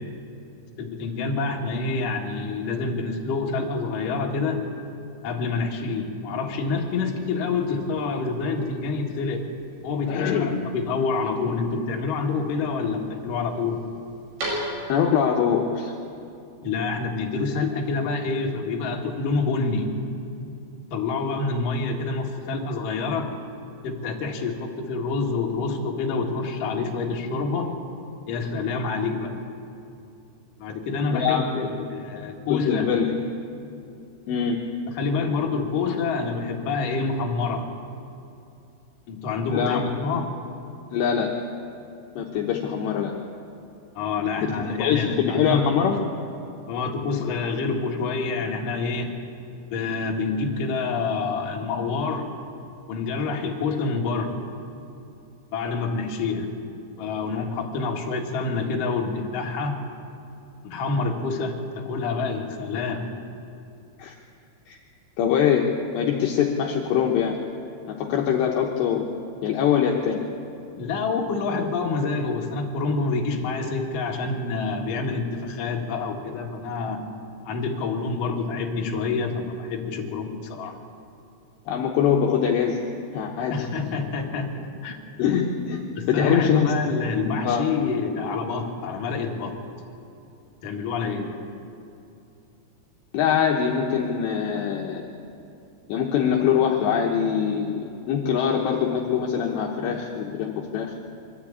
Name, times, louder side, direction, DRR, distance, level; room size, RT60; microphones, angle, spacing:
voice 1, 0.8-4.7 5.2-9.5 9.8-13.8 16.6-19.9 20.9-23.3 23.8-27.7 28.3-29.3 30.6-32.9 34.9-37.7 39.1-40.3 44.0-46.1 46.7-49.1 49.7-52.3 52.9-54.4 55.5-56.5 57.0-59.8 60.6-63.1 70.8-77.0 77.4-80.8 83.5-85.0 86.0-89.5 90.6-91.3, left 4 dB, 55° left, 0 dB, 2.7 m, -27 dB
sound 1, 6.7-15.2, right 1 dB, 60° right, 8.4 m, -40 dB
voice 2, 10.1-10.6 14.9-15.9 31.1-31.7 32.5-33.1 34.3-34.6 39.5-39.8 40.9-41.3 42.2-43.1 44.8-46.1 64.0-64.1 64.7-64.8 65.2-65.7 65.9-67.4 67.9-69.1 69.4-70.2 81.7-82.8 83.1-83.6 85.2-85.8 86.1-86.7 87.4-87.7 93.1-95.1 95.9-100.9, left 8 dB, 70° left, 0 dB, 2.9 m, -23 dB
23.5 x 13.5 x 8.6 m, 2.8 s
omnidirectional pair, 5.8 m